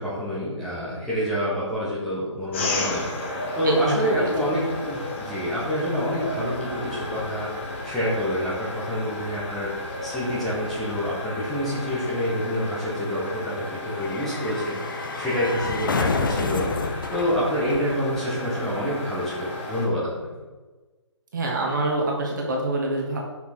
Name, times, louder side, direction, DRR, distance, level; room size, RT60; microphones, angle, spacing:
voice 1, 0.0-9.7 10.0-20.5, equal, ahead, -11 dB, 1.2 m, -27 dB
sound 1, 2.5-19.9, left 2 dB, 25° left, 1.1 m, -33 dB
voice 2, 3.6-4.3 21.3-23.2, right 2 dB, 40° right, -1 dB, 1.7 m, -26 dB
sound 2, 8.8-18.6 18.9-19.0, left 4 dB, 40° left, 0.6 m, -32 dB
6.0 x 5.7 x 4.5 m, 1.3 s
figure-of-eight pair, 145°, 16 cm